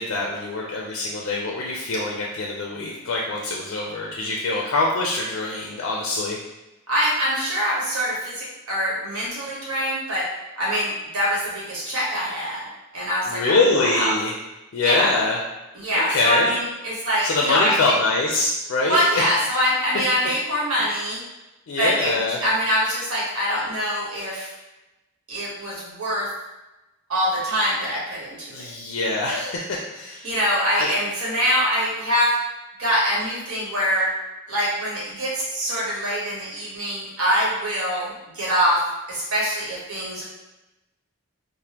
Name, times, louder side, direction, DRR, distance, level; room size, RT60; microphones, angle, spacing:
voice 1, 0.0-6.4 13.3-14.3 14.7-15.4 15.9-16.5 17.2-19.4 21.7-22.4 28.5-30.3 30.8-30.9, left 2 dB, 55° left, -2 dB, 0.4 m, -24 dB
voice 2, 6.9-10.3 10.6-12.6 12.9-14.1 14.8-15.2 15.7-17.8 18.9-21.2 21.8-22.1 22.4-24.5 25.3-26.3 27.1-28.7 30.2-32.4 32.8-34.1 34.5-40.2, equal, 75° right, -6 dB, 1.1 m, -24 dB
3.3 x 2.1 x 2.9 m, 1.0 s
head